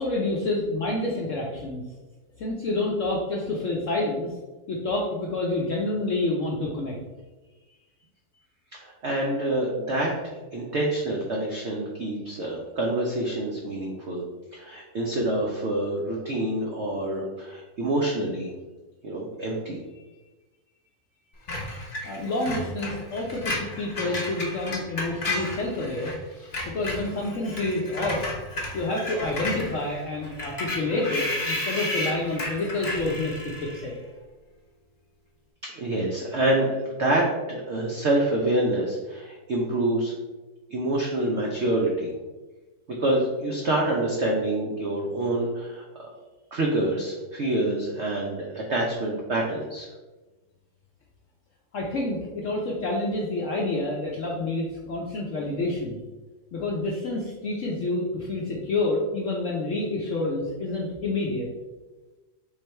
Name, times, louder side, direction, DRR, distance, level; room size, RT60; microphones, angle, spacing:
voice 1, 0.0-1.9 2.4-4.3 4.7-7.0 22.0-28.3 28.7-33.9 51.7-56.0 56.5-61.5, left 2 dB, 70° left, -2 dB, 0.7 m, -28 dB
voice 2, 8.7-14.2 14.5-18.5 19.0-19.8 35.7-40.1 40.7-42.1 43.0-46.1 46.5-49.9, right 1 dB, 80° right, -1 dB, 0.6 m, -27 dB
Screech, 21.5-26.2 26.4-33.9, left 2 dB, 40° left, 1.0 m, -33 dB
3.8 x 3.2 x 4.3 m, 1.2 s
omnidirectional pair, 2.0 m